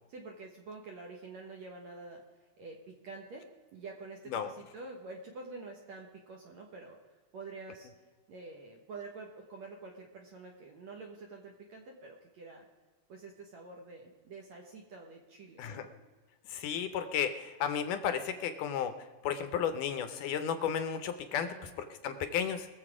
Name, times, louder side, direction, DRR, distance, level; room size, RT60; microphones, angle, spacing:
voice 1, 0.1-2.2 2.6-3.4 3.7-7.0 7.3-7.9 8.3-12.7 13.1-15.8 21.3-21.7, right 3 dB, 60° right, 1 dB, 2.0 m, -47 dB
voice 2, 16.5-18.9 19.2-22.7, left 8 dB, 75° left, 9 dB, 2.0 m, -33 dB
21.5 x 7.5 x 4.9 m, 1.4 s
omnidirectional pair, 4.3 m